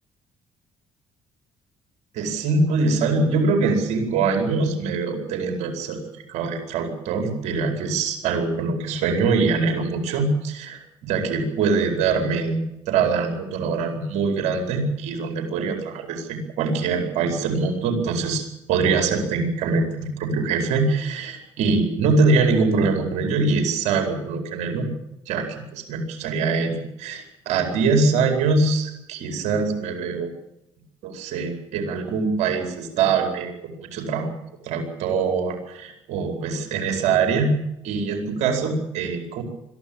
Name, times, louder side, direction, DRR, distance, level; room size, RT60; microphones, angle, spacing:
voice 1, 2.1-24.9 25.3-30.3 31.0-33.5 33.8-34.3 34.6-37.6 37.8-39.4, right 4 dB, 80° right, 4 dB, 4.8 m, -23 dB
22.0 x 13.5 x 8.8 m, 0.85 s
cardioid pair, 90°, 12 cm